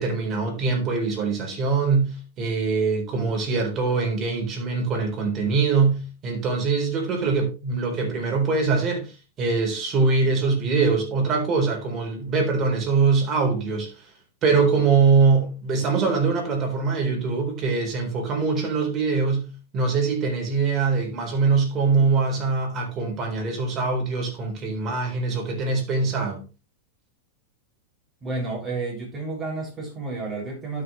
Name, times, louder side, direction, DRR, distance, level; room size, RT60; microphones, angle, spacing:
voice 1, 0.0-14.1 14.4-19.5 19.7-26.4, right 4 dB, 35° right, 4.1 m, -23 dB
voice 2, 28.2-30.8, right 3 dB, 15° right, 6.5 m, -31 dB
12.0 x 6.6 x 3.2 m
hypercardioid pair, 115°, 0 cm